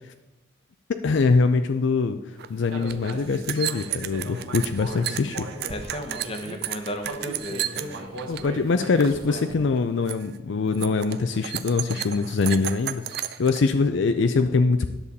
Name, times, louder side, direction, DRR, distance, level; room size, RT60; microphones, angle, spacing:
voice 1, 0.9-2.2 2.5-5.5 8.3-14.9, left 4 dB, 60° left, 8 dB, 0.4 m, -23 dB
sound 1, 2.4-2.5 2.7-8.5 8.7-9.2 9.5-9.8 10.1-10.4 10.7-13.6, right 12 dB, 50° right, 0.4 m, -33 dB
Human voice, 2.7-6.6 7.0-9.7, right 2 dB, 85° right, 1.3 m, -38 dB
voice 2, 5.7-8.4, equal, 25° left, 6 dB, 0.9 m, -35 dB
10.5 x 6.9 x 4.2 m, 1.0 s
head